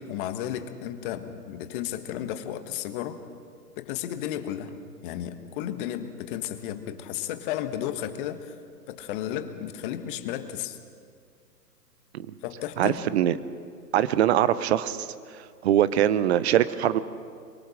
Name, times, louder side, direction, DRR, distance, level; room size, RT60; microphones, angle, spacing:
voice 1, 0.0-3.2 3.8-4.8 5.0-8.5 8.9-10.8 12.4-13.0, left 11 dB, 35° left, 8 dB, 1.5 m, -33 dB
voice 2, 12.8-13.4 13.9-15.1 15.6-17.0, right 11 dB, 45° right, 15 dB, 1.0 m, -22 dB
23.5 x 23.5 x 6.5 m, 2.2 s
hypercardioid pair, 130°, 47 cm